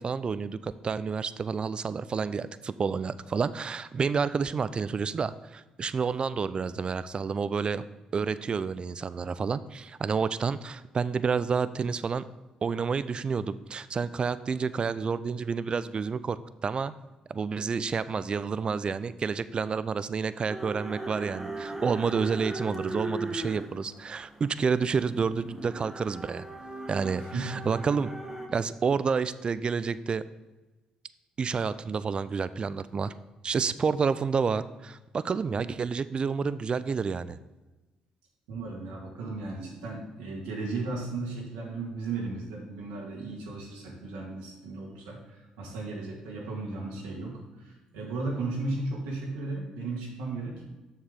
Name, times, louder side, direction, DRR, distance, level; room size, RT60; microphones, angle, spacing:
voice 1, 0.0-7.8 8.1-12.3 12.6-16.9 17.3-26.5 26.9-28.1 28.5-30.2 31.4-33.1 33.4-37.4, right 5 dB, 40° right, 15 dB, 0.4 m, -29 dB
sound 1, 20.5-28.5, right 2 dB, 15° right, 1.2 m, -39 dB
voice 2, 27.2-27.9 38.5-50.6, right 3 dB, 90° right, -3 dB, 1.9 m, -35 dB
7.1 x 6.4 x 3.7 m, 1.1 s
supercardioid pair, 60°, 3 cm